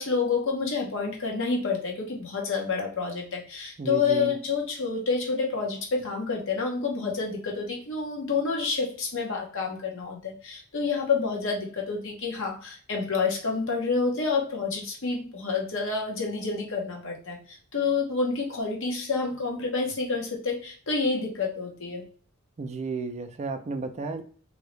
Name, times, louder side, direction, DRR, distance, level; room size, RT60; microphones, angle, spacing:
voice 1, 0.0-22.0, left 4 dB, 65° left, 0 dB, 1.0 m, -28 dB
voice 2, 3.8-4.3 22.6-24.2, right 4 dB, 30° right, 6 dB, 0.3 m, -32 dB
2.8 x 2.7 x 3.1 m, 0.43 s
head